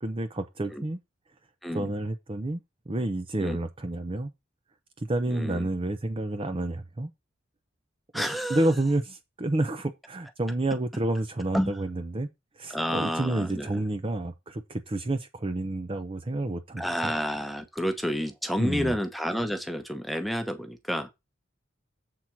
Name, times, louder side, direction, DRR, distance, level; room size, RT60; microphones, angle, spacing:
voice 1, 0.0-1.0 1.7-2.6 2.9-4.3 5.0-7.1 8.1-12.3 12.6-17.1 18.6-19.0, right 1 dB, 30° right, 0.7 m, -29 dB
voice 2, 5.3-5.7 8.1-8.7 11.5-11.7 12.7-13.8 16.8-21.1, equal, ahead, 1.0 m, -30 dB
7.7 x 4.3 x 5.9 m
head